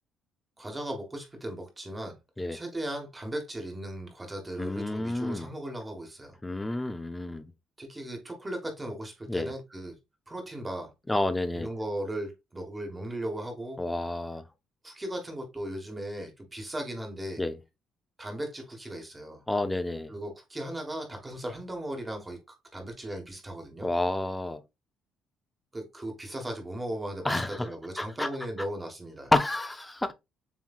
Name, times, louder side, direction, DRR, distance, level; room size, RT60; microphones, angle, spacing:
voice 1, 0.6-2.2 2.5-6.4 7.8-10.0 10.3-10.9 11.5-13.8 14.8-17.4 18.2-19.4 20.1-22.4 22.7-23.9 25.7-29.3, right 1 dB, 15° right, 1.2 m, -37 dB
voice 2, 4.6-5.5 6.4-7.5 9.3-9.5 11.1-11.7 13.8-14.4 17.4-17.6 19.5-20.1 23.8-24.6 27.2-27.7 28.0-28.3 29.3-30.1, left 2 dB, 10° left, 0.4 m, -29 dB
7.1 x 3.1 x 2.3 m
cardioid pair, 150°, 0 cm